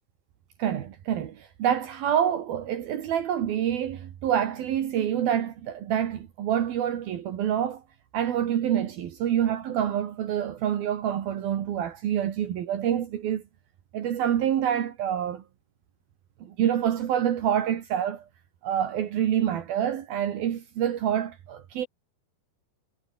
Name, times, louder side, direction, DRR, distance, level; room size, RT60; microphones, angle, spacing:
voice 1, 0.6-7.8 8.1-13.4 13.9-15.4 16.4-18.3 18.6-21.9, right 10 dB, 70° right, 3.7 m, -27 dB
omnidirectional pair, 4.5 m